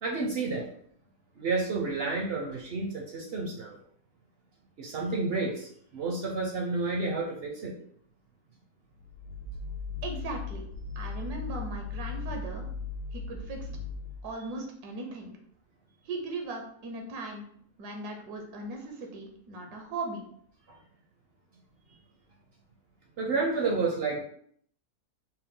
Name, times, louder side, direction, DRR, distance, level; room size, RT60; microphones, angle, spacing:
voice 1, 0.0-0.7 1.4-3.8 4.8-7.8 23.2-24.2, right 3 dB, 60° right, 0 dB, 0.6 m, -30 dB
sound 1, 8.9-14.4, left 4 dB, 85° left, 1.3 m, -37 dB
voice 2, 10.0-10.7 11.0-12.7 13.1-13.7 14.2-15.4 16.0-17.4 17.8-20.2, right 3 dB, 85° right, 2 dB, 1.3 m, -38 dB
4.4 x 2.1 x 3.6 m, 0.62 s
omnidirectional pair, 1.6 m